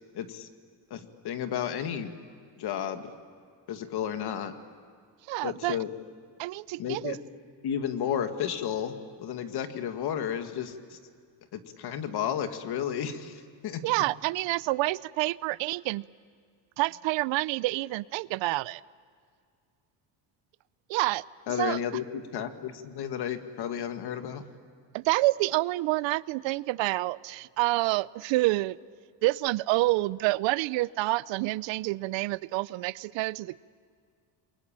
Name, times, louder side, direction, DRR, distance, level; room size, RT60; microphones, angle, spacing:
voice 1, 0.1-0.5 0.9-2.1 2.6-3.1 3.7-4.5 5.4-5.9 6.8-7.2 7.6-11.0 11.5-13.8 21.5-24.4, left 9 dB, 60° left, 8 dB, 1.9 m, -32 dB
voice 2, 5.3-5.8 6.4-7.2 13.8-16.1 16.8-18.8 20.9-21.2 21.6-21.8 24.9-28.8 29.2-33.6, right 20 dB, 80° right, 20 dB, 0.6 m, -28 dB
29.0 x 22.5 x 8.8 m, 2.1 s
cardioid pair, 140°, 44 cm